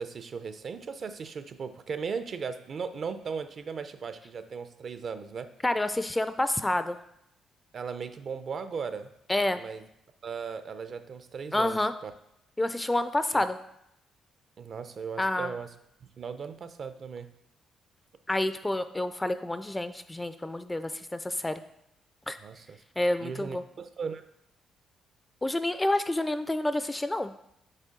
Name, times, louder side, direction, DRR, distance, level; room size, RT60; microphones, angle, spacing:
voice 1, 0.0-5.5 7.7-9.1 9.5-9.8 10.2-12.1 13.3-13.5 14.6-15.7 16.0-17.3 22.4-22.8 23.2-24.2, right 5 dB, 50° right, 10 dB, 0.5 m, -37 dB
voice 2, 5.6-7.0 9.3-9.6 11.5-11.9 12.6-13.6 15.2-15.5 18.3-21.6 22.3-22.4 23.0-23.6 25.4-27.3, left 1 dB, 15° left, 11 dB, 0.3 m, -28 dB
6.5 x 4.5 x 3.7 m, 0.78 s
cardioid pair, 90°, 0 cm